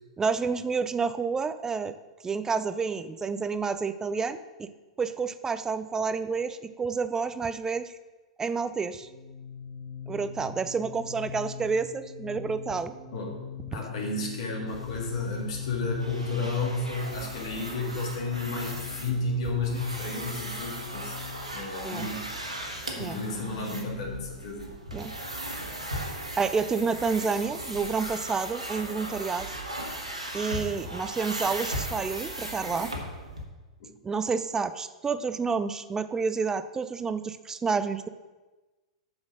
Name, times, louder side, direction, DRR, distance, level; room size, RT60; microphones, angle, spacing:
voice 1, 0.2-1.9 2.2-4.7 5.0-8.0 8.4-9.1 10.1-12.9 13.7-13.8 21.8-22.1 23.0-23.2 24.9-25.1 26.3-29.5 30.3-32.9 34.0-38.1, right 5 dB, 15° right, 12 dB, 0.5 m, -29 dB
sound 1, 9.0-24.3, left 6 dB, 40° left, 1.3 m, -41 dB
voice 2, 13.7-21.2 21.5-22.3 23.0-24.7 33.8-33.9, left 2 dB, 60° left, -2 dB, 2.4 m, -32 dB
sound 2, 14.7-33.4, right 1 dB, 90° right, 1.6 m, -37 dB
7.0 x 6.3 x 6.4 m, 1.2 s
figure-of-eight pair, 95°, 3 cm